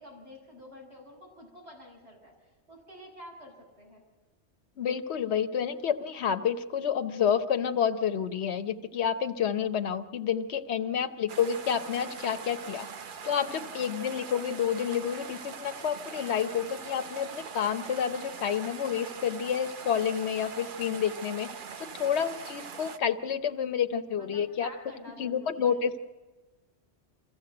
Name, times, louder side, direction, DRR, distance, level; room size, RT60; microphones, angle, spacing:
voice 1, 0.0-2.3 2.7-4.0 10.7-11.0 13.5-13.7 19.8-20.3 24.2-25.8, left 1 dB, 70° right, -2 dB, 6.6 m, -49 dB
voice 2, 4.8-12.9 13.2-21.5 21.8-24.7 25.2-26.0, left 8 dB, 70° left, 8 dB, 1.2 m, -29 dB
sound 1, 11.3-23.0, right 6 dB, 50° right, 0.9 m, -42 dB
24.5 x 15.0 x 7.8 m, 1.2 s
omnidirectional pair, 1.2 m